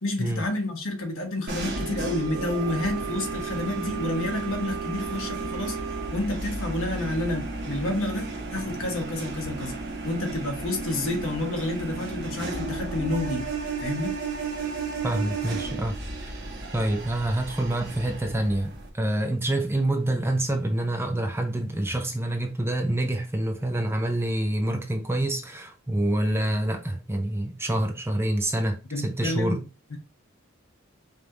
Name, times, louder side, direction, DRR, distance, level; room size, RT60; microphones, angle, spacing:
voice 1, 0.0-5.8 6.1-9.8 10.0-13.5 13.8-14.2 28.9-29.6 29.9-30.0, left 2 dB, 70° left, 1.2 m, -29 dB
sound 1, 1.5-18.9, right 3 dB, 55° right, 1.0 m, -34 dB
Wind instrument woodwind instrument, 1.7-6.2, right 9 dB, 75° right, 0.4 m, -36 dB
voice 2, 15.0-16.4 16.7-29.6, right 1 dB, 10° right, 0.6 m, -27 dB
5.1 x 2.5 x 3.0 m
head